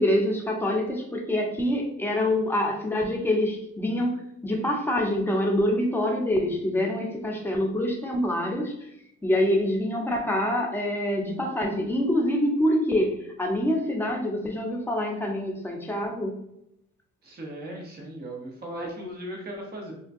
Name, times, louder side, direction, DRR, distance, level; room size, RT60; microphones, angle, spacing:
voice 1, 0.0-8.7 9.2-16.3, left 1 dB, 5° left, 0 dB, 0.7 m, -26 dB
voice 2, 17.2-19.9, right 1 dB, 35° right, -1 dB, 0.8 m, -37 dB
3.6 x 2.2 x 2.6 m, 0.77 s
cardioid pair, 90°, 30 cm